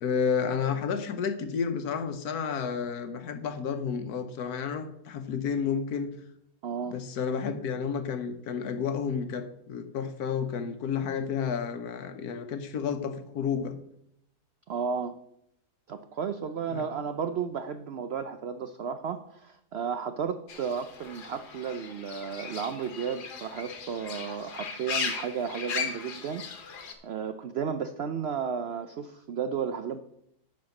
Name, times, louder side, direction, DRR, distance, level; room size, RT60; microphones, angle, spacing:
voice 1, 0.0-6.1 6.9-13.8 16.7-16.8, left 6 dB, 75° left, 8 dB, 1.4 m, -31 dB
voice 2, 6.6-7.0 14.7-15.2 15.9-30.0, right 6 dB, 75° right, 9 dB, 0.6 m, -33 dB
Fowl / Bird, 20.5-26.9, left 5 dB, 90° left, 1.7 m, -37 dB
10.5 x 4.7 x 5.9 m, 0.75 s
omnidirectional pair, 1.7 m